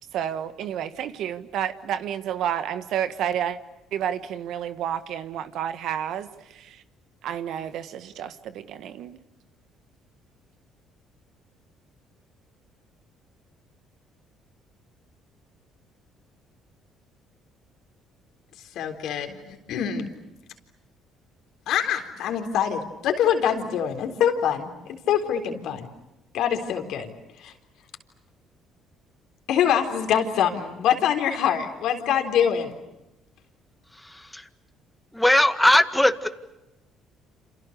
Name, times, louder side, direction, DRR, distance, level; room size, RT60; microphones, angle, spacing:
voice 1, 0.1-3.6 3.9-6.8 7.2-9.2, right 9 dB, 70° right, 1.6 m, -30 dB
voice 2, 18.8-19.4 19.7-20.1 21.7-25.9 26.3-27.5 29.5-32.7, left 9 dB, 70° left, 3.9 m, -24 dB
voice 3, 34.1-34.4 35.1-36.3, left 1 dB, 5° left, 1.8 m, -19 dB
28.5 x 28.0 x 6.7 m
supercardioid pair, 70°, 0 cm